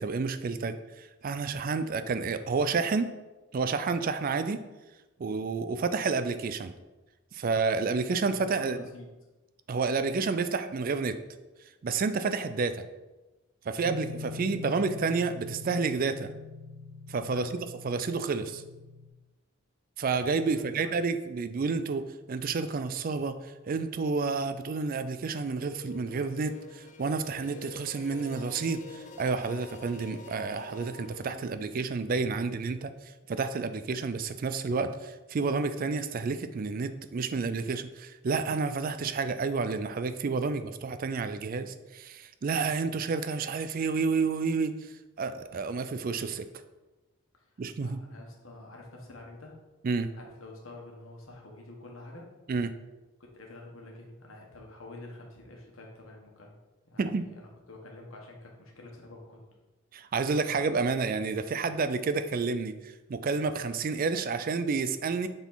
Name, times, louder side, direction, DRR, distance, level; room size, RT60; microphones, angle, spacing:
voice 1, 0.0-3.1 3.5-4.6 5.2-6.7 7.3-8.8 9.7-11.2 11.8-12.8 13.7-16.3 17.1-17.5 17.8-18.6 20.0-32.9 33.3-46.5 47.6-48.0 49.8-50.1 52.5-52.7 57.0-57.3 59.9-65.3, right 4 dB, 45° right, 11 dB, 0.4 m, -30 dB
voice 2, 8.1-9.1 17.3-17.6 20.5-21.0 47.3-47.4 47.7-49.6 50.2-52.4 53.2-56.6 56.9-59.4, left 2 dB, 80° left, 0 dB, 1.4 m, -48 dB
Guitar, 13.8-19.1, left 3 dB, 70° right, 0.9 m, -42 dB
sound 1, 25.4-31.4, left 4 dB, 35° left, 0.6 m, -47 dB
7.1 x 4.0 x 4.0 m, 1.1 s
head